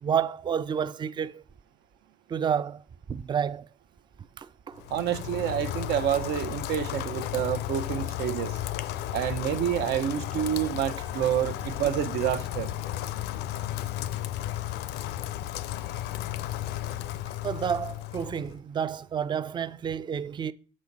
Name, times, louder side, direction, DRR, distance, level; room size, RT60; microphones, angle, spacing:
voice 1, 0.0-1.4 2.3-2.8 3.1-3.7 4.4-4.8 17.4-20.5, right 8 dB, 25° right, 0.4 m, -30 dB
Rain, 4.8-18.6, left 13 dB, 80° left, 0.5 m, -34 dB
voice 2, 4.9-8.6 9.1-12.7, right 10 dB, 80° right, 0.9 m, -28 dB
6.4 x 6.2 x 5.4 m
cardioid pair, 110°, 17 cm